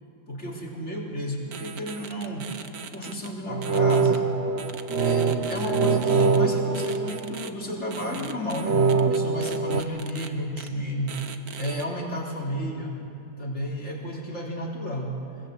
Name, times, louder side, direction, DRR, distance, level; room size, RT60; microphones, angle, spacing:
voice 1, 0.3-2.6 2.9-4.4 4.9-13.0 13.4-15.3, equal, 40° left, -2 dB, 4.1 m, -32 dB
sound 1, 1.5-3.3 3.6-4.2 4.6-6.4 6.7-7.5 7.9-10.3 10.6-10.7 11.1-11.8, right 7 dB, 65° right, 1.6 m, -40 dB
sound 2, 3.5-7.8 8.6-9.8, right 4 dB, 45° right, 1.1 m, -24 dB
26.0 x 21.0 x 8.2 m, 2.7 s
omnidirectional pair, 1.8 m